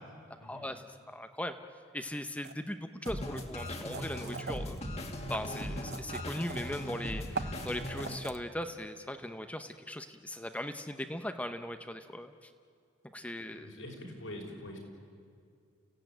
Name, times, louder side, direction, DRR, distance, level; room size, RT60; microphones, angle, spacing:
voice 1, 0.4-1.6 1.9-4.8 5.3-12.5 13.1-13.7, left 1 dB, 5° left, 8 dB, 0.8 m, -39 dB
sound 1, 2.4-2.5 3.0-4.8 5.2-6.8 7.1-8.4, right 5 dB, 50° right, 0.8 m, -41 dB
sound 2, 3.1-8.2, left 1 dB, 30° left, 1.9 m, -39 dB
voice 2, 13.5-14.8, left 1 dB, 80° left, 0 dB, 5.8 m, -44 dB
30.0 x 16.5 x 9.1 m, 2.3 s
head